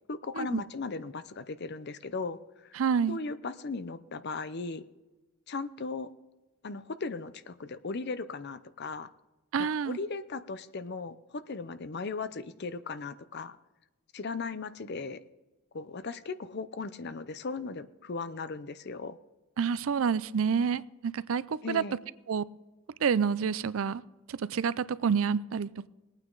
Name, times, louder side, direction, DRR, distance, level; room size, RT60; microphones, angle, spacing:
voice 1, 0.1-2.7 3.1-4.8 5.5-6.1 6.6-9.1 9.6-13.6 14.1-15.2 15.7-19.2 21.6-22.0, left 4 dB, 50° left, 13 dB, 0.6 m, -37 dB
voice 2, 2.8-3.2 9.5-10.0 19.6-21.8 22.3-22.4 23.0-24.0 24.3-25.9, right 6 dB, 65° right, 18 dB, 0.4 m, -28 dB
20.0 x 9.0 x 3.9 m, 1.1 s
head